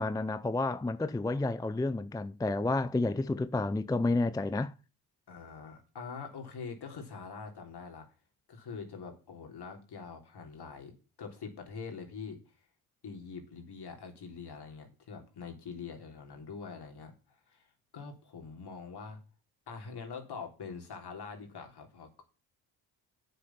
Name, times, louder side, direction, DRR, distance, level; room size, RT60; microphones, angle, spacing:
voice 1, 0.0-4.7, left 2 dB, 10° left, 0.5 m, -30 dB
voice 2, 5.3-8.1 8.5-12.6 13.0-17.7 17.9-19.2 19.7-22.2, left 5 dB, 55° left, 3.5 m, -44 dB
7.8 x 6.7 x 7.1 m
supercardioid pair, 60°, 46 cm